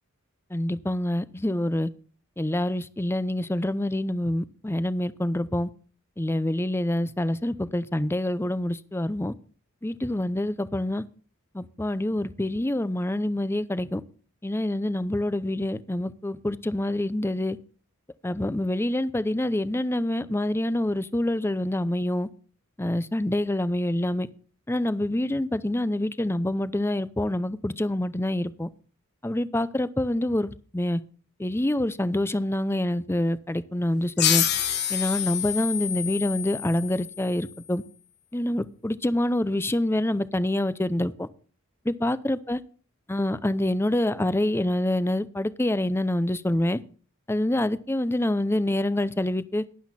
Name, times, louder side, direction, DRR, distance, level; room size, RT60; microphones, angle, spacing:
voice 1, 0.5-1.9 2.4-5.7 6.2-9.3 9.8-11.0 11.5-14.0 14.4-17.6 18.2-22.3 22.8-24.3 24.7-28.7 29.2-31.0 31.4-34.4 34.9-37.8 38.3-41.3 41.9-42.6 43.1-46.8 47.3-49.6, left 1 dB, 10° left, 15 dB, 0.6 m, -26 dB
sound 1, 34.2-37.4, left 10 dB, 55° left, 1.2 m, -27 dB
12.0 x 10.5 x 4.2 m, 0.40 s
head